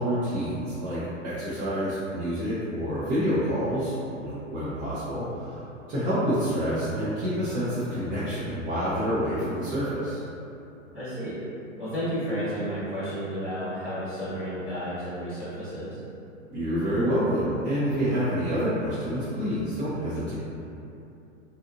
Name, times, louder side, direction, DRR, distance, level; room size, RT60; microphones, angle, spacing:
voice 1, 0.0-3.9 4.2-5.6 5.9-10.2 16.5-20.3, equal, 20° right, -12 dB, 0.4 m, -28 dB
voice 2, 10.9-11.4 11.8-16.0, equal, ahead, -14 dB, 1.0 m, -32 dB
2.8 x 2.4 x 2.5 m, 2.7 s
hypercardioid pair, 115°, 40 cm